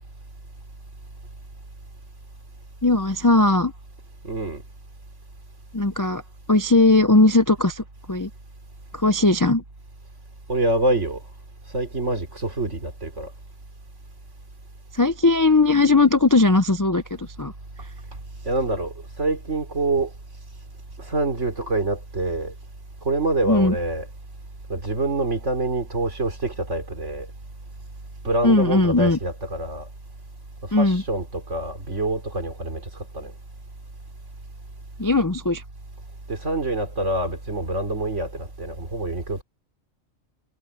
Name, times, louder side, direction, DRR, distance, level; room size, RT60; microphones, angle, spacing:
voice 1, 2.8-3.7 5.7-6.2 6.5-8.3 8.9-9.6 14.9-17.5 23.5-23.7 28.4-29.2 30.7-31.0 35.0-35.6, left 2 dB, 25° left, 0.5 m, -18 dB
voice 2, 4.2-4.6 10.5-11.2 11.7-13.3 18.5-20.1 21.0-22.5 23.0-24.1 24.7-27.3 28.2-29.9 30.7-32.8 33.1-33.3 36.3-39.4, right 2 dB, 65° right, 3.8 m, -26 dB
omnidirectional pair, 1.4 m